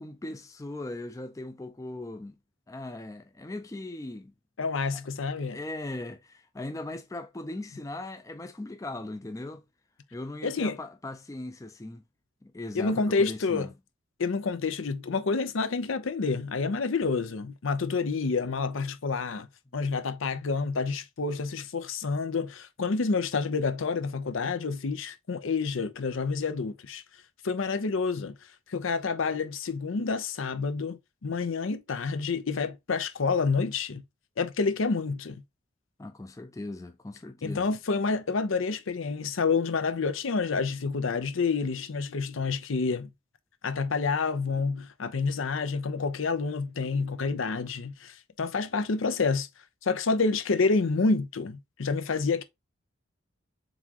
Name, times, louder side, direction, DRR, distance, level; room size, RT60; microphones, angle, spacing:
voice 1, 0.0-2.4 2.7-4.3 5.4-9.6 10.1-12.0 12.4-13.7 36.0-37.8, left 2 dB, 15° left, 0.4 m, -39 dB
voice 2, 4.6-5.6 10.4-10.8 12.7-13.7 14.2-19.5 19.7-27.0 27.4-28.4 28.7-34.0 34.4-35.4 37.4-43.1 43.6-49.5 49.8-52.4, left 4 dB, 80° left, 0.6 m, -28 dB
4.0 x 3.6 x 2.9 m
head